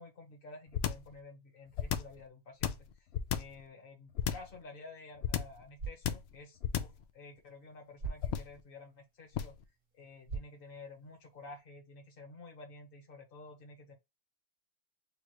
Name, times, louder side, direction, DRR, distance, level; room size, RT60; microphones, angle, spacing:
voice 1, 0.0-9.5 9.9-13.9, left 3 dB, 40° left, 1.4 m, -52 dB
sound 1, 0.7-1.1 1.7-2.2 2.6-3.6 4.2-4.6 5.2-5.6 6.0-6.3 6.6-7.0 8.2-8.6 9.3-9.6, left 9 dB, 65° left, 0.6 m, -33 dB
sound 2, 5.6-11.6, right 4 dB, 60° right, 2.1 m, -48 dB
6.8 x 2.4 x 3.1 m
omnidirectional pair, 1.6 m